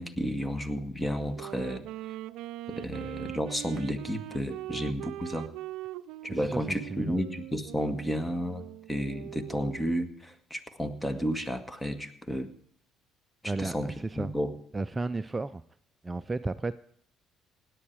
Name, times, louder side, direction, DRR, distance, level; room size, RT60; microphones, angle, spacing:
voice 1, 0.0-1.9 2.7-5.5 6.2-12.5 13.4-14.6, equal, 15° left, 10 dB, 1.8 m, -32 dB
Wind instrument woodwind instrument, 1.2-9.9, right 15 dB, 75° right, 0.5 m, -41 dB
voice 2, 6.3-7.2 13.4-14.3 14.7-15.6 16.0-16.7, right 3 dB, 20° right, 12 dB, 0.6 m, -33 dB
17.0 x 10.0 x 4.8 m, 0.63 s
supercardioid pair, 65°, 0 cm